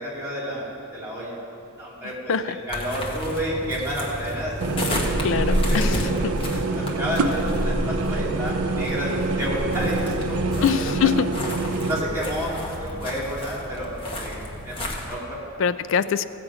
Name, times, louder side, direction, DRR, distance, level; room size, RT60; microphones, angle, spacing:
voice 1, 0.0-1.4 1.8-4.5 5.7-10.7 11.9-13.9 14.2-15.4 15.9-16.0, equal, 10° right, -9 dB, 3.0 m, -30 dB
sound 1, 2.7-15.2, equal, 25° left, 1.1 m, -30 dB
sound 2, 4.6-12.0, right 3 dB, 80° right, 0.6 m, -26 dB
sound 3, 4.8-13.1, left 1 dB, 30° right, 1.5 m, -39 dB
voice 2, 5.2-6.0 10.6-11.3 15.6-16.2, left 7 dB, 60° left, 14 dB, 0.3 m, -23 dB
15.0 x 7.6 x 4.9 m, 2.8 s
head